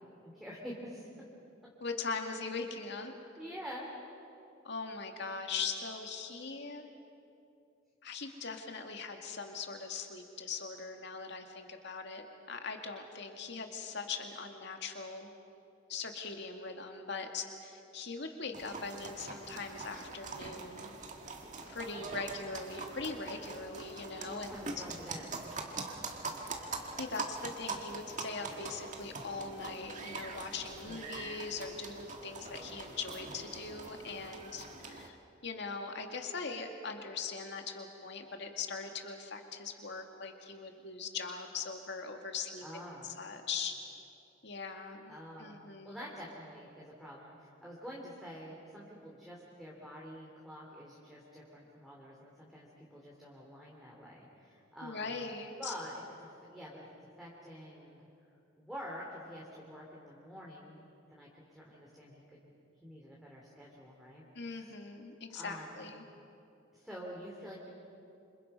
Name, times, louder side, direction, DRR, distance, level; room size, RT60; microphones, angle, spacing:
voice 1, 0.2-1.1 3.4-3.9 22.0-22.2 24.2-25.5 30.8-31.1 42.6-43.2 45.1-45.6 45.8-55.3 55.6-56.9 57.2-58.1 58.6-60.8 61.1-62.5 62.8-64.2 65.3-65.9 66.7-67.7, equal, ahead, -5 dB, 3.0 m, -47 dB
voice 2, 1.8-3.1 4.6-6.9 8.0-15.3 15.9-21.0 21.7-24.7 26.4-26.7 27.0-35.2 35.4-43.7 44.4-46.0 54.8-55.7 64.3-66.0, left 4 dB, 60° left, 4 dB, 2.2 m, -41 dB
sound 1, 18.5-35.1, right 3 dB, 40° right, 1.8 m, -43 dB
27.5 x 26.5 x 5.6 m, 2.7 s
head